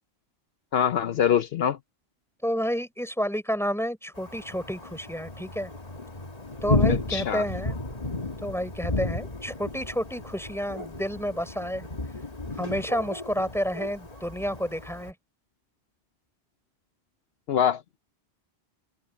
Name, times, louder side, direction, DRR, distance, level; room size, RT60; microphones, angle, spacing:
voice 1, 0.7-1.8 6.9-7.4 17.5-17.8, left 9 dB, 70° left, 0.9 m, -24 dB
voice 2, 2.4-5.7 6.6-7.8 8.4-11.9 12.6-15.1, equal, ahead, 5.5 m, -30 dB
Thunder, 4.2-15.1, left 2 dB, 35° left, 2.1 m, -32 dB
omnidirectional pair, 1.1 m